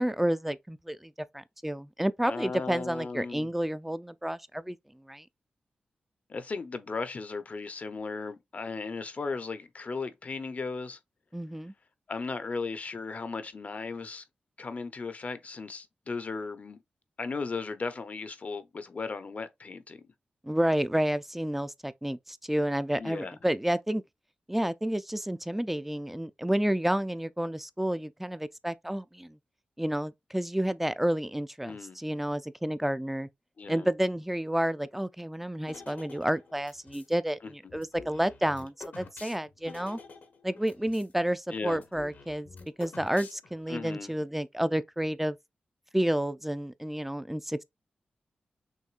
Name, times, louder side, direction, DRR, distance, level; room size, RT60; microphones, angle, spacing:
voice 1, 0.0-4.8 5.1-5.2 11.3-11.7 20.4-24.0 24.5-29.4 29.8-33.3 33.7-40.0 40.4-42.5 42.8-45.4 45.9-47.6, right 1 dB, 5° right, 0.4 m, -30 dB
voice 2, 2.3-3.5 6.3-11.0 12.1-14.2 14.6-16.8 17.2-20.0 23.0-23.4 31.6-32.0 33.6-33.9 37.4-37.5 41.5-41.8 43.7-44.1, left 4 dB, 50° left, 0.7 m, -36 dB
sound 1, 35.7-37.1 37.7-41.1 41.4-41.5 41.7-43.7, left 4 dB, 75° left, 1.2 m, -48 dB
6.4 x 2.6 x 2.4 m
cardioid pair, 70°, 3 cm